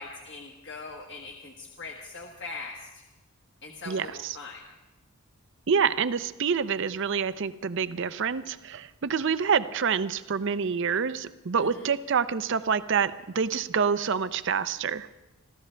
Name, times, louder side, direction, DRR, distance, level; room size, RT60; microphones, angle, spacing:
voice 1, 0.0-3.0 3.6-4.6 11.6-11.9, left 3 dB, 50° left, 0 dB, 1.4 m, -41 dB
voice 2, 3.9-4.4 5.7-15.1, right 6 dB, 55° right, 14 dB, 0.5 m, -27 dB
26.0 x 14.5 x 3.3 m, 1.1 s
head